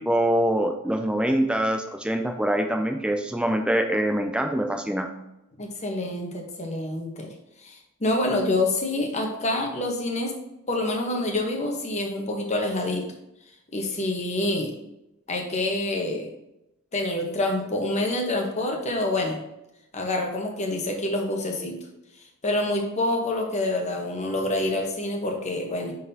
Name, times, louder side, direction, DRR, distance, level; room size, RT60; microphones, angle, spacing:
voice 1, 0.0-5.1, right 1 dB, 5° right, 4 dB, 0.4 m, -24 dB
voice 2, 5.6-7.3 7.6-10.4 10.7-13.0 13.7-14.7 15.3-16.3 16.9-19.4 19.9-21.8 22.4-25.9, left 2 dB, 30° left, 2 dB, 1.0 m, -27 dB
9.5 x 4.0 x 2.8 m, 0.89 s
head